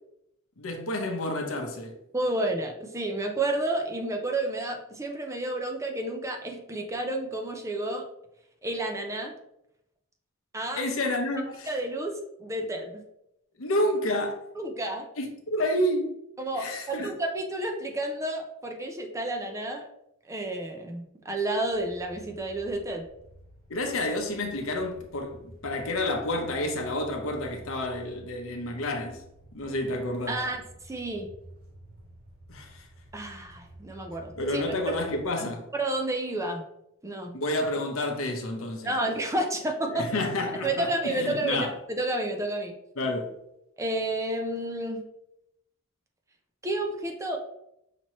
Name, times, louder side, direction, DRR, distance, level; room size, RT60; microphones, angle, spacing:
voice 1, 0.6-2.0 10.8-11.7 13.6-14.5 15.2-16.2 16.5-17.1 23.7-29.2 29.5-30.4 32.5-32.9 34.4-35.7 37.3-38.9 39.9-41.7 43.0-43.3, left 1 dB, 70° left, 0.8 m, -29 dB
voice 2, 2.1-8.0 8.6-9.3 10.5-10.8 11.7-13.0 14.6-15.1 16.4-19.9 20.3-23.1 30.3-31.3 33.1-34.8 35.4-36.6 37.0-37.4 38.8-40.0 40.6-42.7 43.8-45.0 46.6-47.4, right 1 dB, 15° right, 0.5 m, -31 dB
sound 1, 21.7-35.3, right 2 dB, 80° right, 1.8 m, -51 dB
5.9 x 2.9 x 3.0 m
head